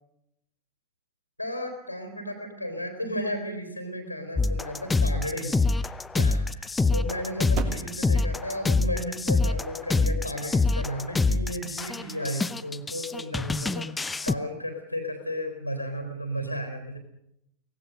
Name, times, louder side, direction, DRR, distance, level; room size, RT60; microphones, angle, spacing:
voice 1, 1.4-17.0, equal, 90° left, 4 dB, 3.6 m, -34 dB
sound 1, 4.4-14.3, left 3 dB, 10° left, 0.8 m, -26 dB
sound 2, 7.5-12.2, right 7 dB, 45° right, 2.9 m, -43 dB
24.0 x 18.5 x 6.6 m, 0.79 s
figure-of-eight pair, 90°, 0 cm